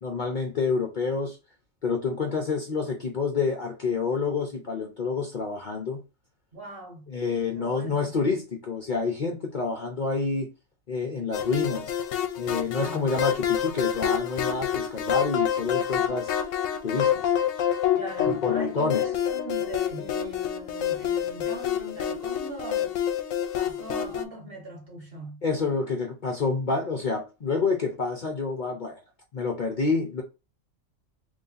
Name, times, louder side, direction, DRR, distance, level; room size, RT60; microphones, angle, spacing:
voice 1, 0.0-1.4 1.8-6.0 7.1-10.5 10.9-12.0 12.4-16.3 16.8-17.3 18.3-19.1 25.4-29.0 29.3-30.2, left 4 dB, 45° left, 0.7 m, -28 dB
voice 2, 6.5-7.1 7.5-8.2 12.8-13.1 17.9-23.0 23.5-25.4, right 1 dB, 45° right, 1.6 m, -40 dB
sound 1, 11.3-24.2, left 9 dB, 75° left, 0.9 m, -27 dB
3.1 x 2.7 x 3.9 m
omnidirectional pair, 1.3 m